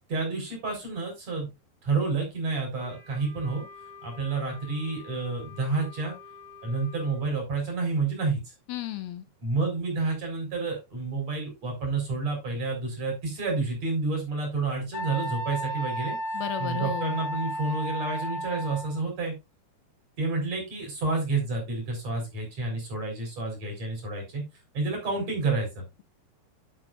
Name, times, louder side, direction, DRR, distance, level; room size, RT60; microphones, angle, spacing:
voice 1, 0.1-1.5 1.8-3.6 4.0-6.2 6.6-8.4 9.4-16.2 16.6-19.3 20.2-24.4 24.7-25.8, right 3 dB, 40° right, 1 dB, 6.1 m, -29 dB
Wind instrument woodwind instrument, 2.8-7.2, left 4 dB, 10° left, 3.1 m, -48 dB
voice 2, 8.7-9.2 16.3-17.2, left 12 dB, 75° left, 9 dB, 2.6 m, -34 dB
Wind instrument woodwind instrument 2, 14.9-19.0, right 1 dB, 60° left, 4.5 m, -33 dB
10.5 x 8.3 x 2.6 m, 0.22 s
omnidirectional pair, 4.6 m